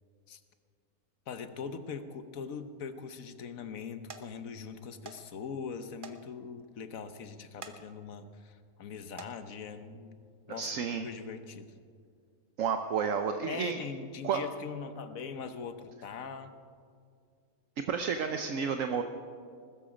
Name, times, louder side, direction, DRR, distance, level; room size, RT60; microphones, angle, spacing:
voice 1, 1.3-10.7 11.0-11.7 13.4-16.5, left 6 dB, 70° left, 10 dB, 1.4 m, -41 dB
sound 1, 2.6-3.1 3.6-3.8 4.1-4.3 5.0-5.2 5.5-5.6 6.0-6.2 6.6-6.7 7.5-7.8 8.3-8.5 9.0-9.3 10.3-10.4 10.9-11.0, right 5 dB, 40° right, 1.0 m, -47 dB
voice 2, 10.5-11.1 12.6-13.8 14.2-14.4 17.9-19.0, right 6 dB, 65° right, 7 dB, 1.1 m, -31 dB
20.0 x 13.5 x 5.1 m, 2.2 s
omnidirectional pair, 1.5 m